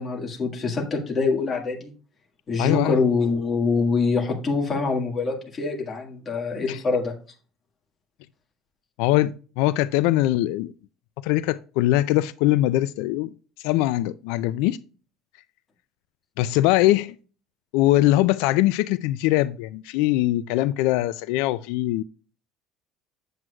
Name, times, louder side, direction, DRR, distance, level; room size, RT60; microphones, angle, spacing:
voice 1, 0.0-1.9 2.5-7.1, left 4 dB, 20° left, 1.7 m, -24 dB
voice 2, 2.6-3.0 6.7-6.8 9.0-10.7 11.2-13.3 13.6-14.8 16.4-17.2 17.7-22.0, left 16 dB, 85° left, 0.3 m, -22 dB
7.8 x 7.4 x 2.3 m
cardioid pair, 170°, 0 cm